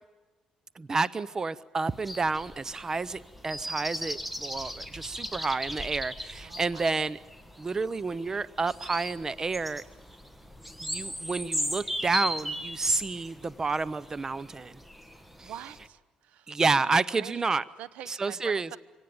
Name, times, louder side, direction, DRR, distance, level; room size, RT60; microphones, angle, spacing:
voice 1, 0.8-7.2 7.6-9.8 10.8-14.8 15.4-15.5 16.5-17.6 18.1-18.7, right 4 dB, 25° right, 18 dB, 0.6 m, -30 dB
sound 1, 1.9-15.9, equal, 5° right, 1.5 m, -37 dB
voice 2, 6.4-7.0 15.1-18.8, right 11 dB, 80° right, 16 dB, 0.9 m, -46 dB
25.5 x 18.0 x 8.7 m, 1.3 s
cardioid pair, 95°, 2 cm